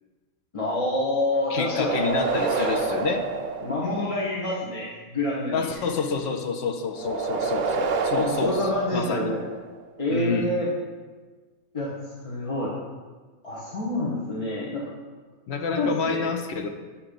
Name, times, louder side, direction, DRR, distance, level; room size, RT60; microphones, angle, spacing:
voice 1, 0.5-2.0 3.6-5.8 7.4-7.5 8.2-9.4 10.0-10.7 11.7-11.9 12.2-12.7 13.4-14.9 15.7-16.3, left 1 dB, 30° left, -5 dB, 0.8 m, -27 dB
voice 2, 1.5-3.3 5.5-8.6 8.9-9.3 10.1-10.5 15.5-16.7, left 5 dB, 65° left, 6 dB, 0.7 m, -28 dB
sound 1, 1.6-4.4 7.0-9.7, right 4 dB, 75° right, 0.4 m, -28 dB
8.3 x 2.9 x 5.1 m, 1.4 s
omnidirectional pair, 1.4 m